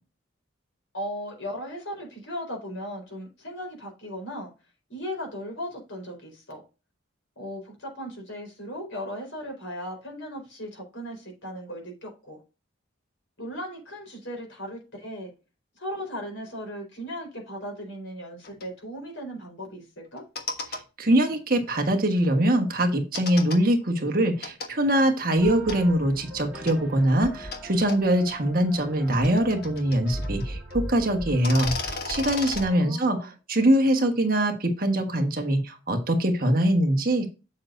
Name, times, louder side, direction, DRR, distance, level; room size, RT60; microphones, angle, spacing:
voice 1, 0.9-4.5 4.9-6.6 7.4-12.4 13.4-15.3 15.8-20.2 32.6-33.3, equal, 75° left, 4.3 m, -37 dB
sound 1, 18.4-18.6 20.2-20.8 23.1-23.6 24.4-24.7 25.7-25.8 26.7-26.8 27.5-27.6 27.9-28.0 28.9-30.5 30.7-30.8 31.3-32.6, left 4 dB, 50° left, 1.3 m, -34 dB
voice 2, 20.7-37.3, right 1 dB, 45° right, 1.4 m, -23 dB
sound 2, 25.4-32.7, right 1 dB, 5° right, 2.9 m, -38 dB
7.8 x 7.2 x 2.6 m
head